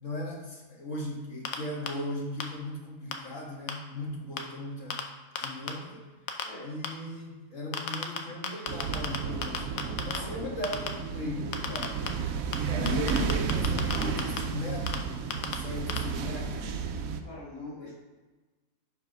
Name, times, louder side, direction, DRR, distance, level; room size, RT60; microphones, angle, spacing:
voice 1, 0.0-5.0 5.4-6.1 6.6-9.7 10.0-12.0 12.7-15.1 15.5-16.7 17.8-17.9, left 1 dB, 65° left, -2 dB, 1.9 m, -37 dB
sound 1, 1.4-1.6 1.9-2.0 2.4-2.5 3.1-3.2 3.7-3.8 4.4-4.5 4.9-5.0 5.4-5.7 6.3-6.4 6.8-6.9 7.7-8.2 8.4-9.2 9.4-10.2 10.6-10.9 11.5-12.1 12.5-12.6 12.9-14.4 14.9-15.0 15.3-15.6 15.9-16.0, left 8 dB, 80° left, 1.2 m, -31 dB
sound 2, 8.7-17.2, right 6 dB, 80° right, 1.1 m, -32 dB
voice 2, 10.1-10.5 12.7-13.4 17.2-17.9, left 3 dB, 25° left, -6 dB, 2.2 m, -38 dB
7.1 x 4.7 x 5.3 m, 1.2 s
omnidirectional pair, 1.5 m